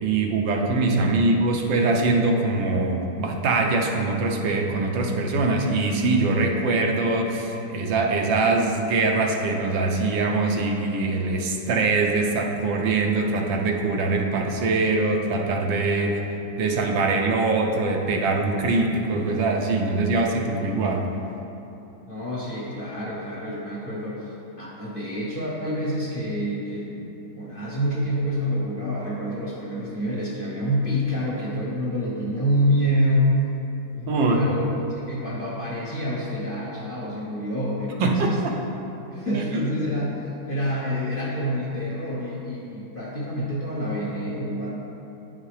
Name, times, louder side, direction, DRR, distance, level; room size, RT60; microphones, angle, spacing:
voice 1, 0.0-16.2 16.6-21.1 34.1-34.4 38.0-38.5 39.3-39.6, right 3 dB, 90° right, 1 dB, 1.5 m, -23 dB
voice 2, 22.1-33.3 33.9-38.4 39.1-44.7, equal, 40° left, -6 dB, 0.8 m, -27 dB
9.5 x 5.8 x 3.2 m, 2.9 s
omnidirectional pair, 2.0 m